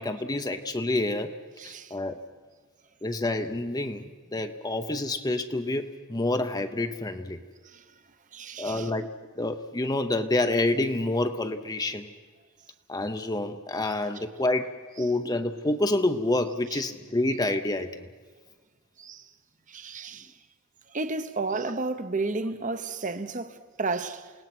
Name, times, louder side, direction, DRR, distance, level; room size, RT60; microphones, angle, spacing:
voice 1, 0.0-1.3 1.6-2.2 3.0-7.4 8.6-12.1 12.9-18.0, left 2 dB, 20° left, 0.7 m, -28 dB
voice 2, 1.6-1.9 7.6-7.8 8.3-8.9 13.8-13.9 16.7-16.8 19.0-19.3 19.7-20.3 20.9-24.3, right 3 dB, 40° right, 1.0 m, -32 dB
28.5 x 18.0 x 6.1 m
head